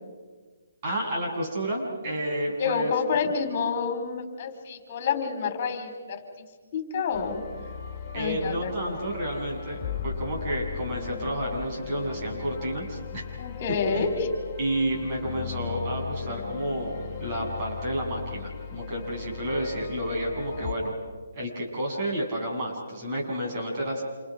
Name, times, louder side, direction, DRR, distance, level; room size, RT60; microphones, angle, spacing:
voice 1, 0.8-2.9 8.1-13.3 13.9-14.1 14.6-21.0 21.3-24.0, right 1 dB, 30° right, -2 dB, 7.4 m, -30 dB
voice 2, 2.6-6.4 6.7-7.4 8.1-8.9 13.4-14.3, left 6 dB, 35° left, 6 dB, 4.3 m, -29 dB
sound 1, 7.1-20.7, left 7 dB, 20° left, 4.2 m, -37 dB
30.0 x 28.0 x 5.1 m, 1.4 s
hypercardioid pair, 160°, 0 cm